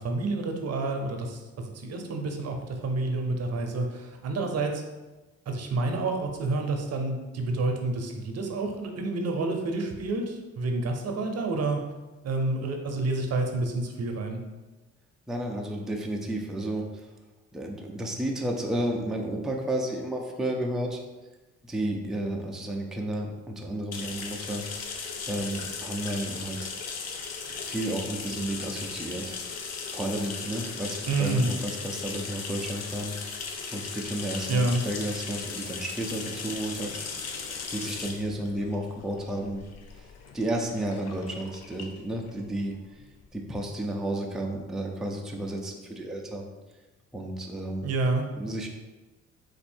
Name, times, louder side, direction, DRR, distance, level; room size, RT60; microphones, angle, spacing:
voice 1, 0.0-1.4 1.7-4.8 5.5-11.8 12.2-14.4 31.1-31.5 34.5-34.8 47.8-48.3, right 2 dB, 55° right, 3 dB, 0.7 m, -28 dB
voice 2, 15.3-16.8 17.5-21.0 21.6-24.6 25.3-26.7 27.6-29.3 29.9-33.1 33.7-37.0 37.7-39.6 40.3-42.7 43.3-46.5 47.1-47.9 48.4-48.7, right 1 dB, ahead, 0 dB, 0.5 m, -32 dB
sound 1, 23.9-43.3, left 5 dB, 55° left, 0.6 m, -37 dB
4.3 x 2.6 x 4.3 m, 1.2 s
cardioid pair, 90°, 30 cm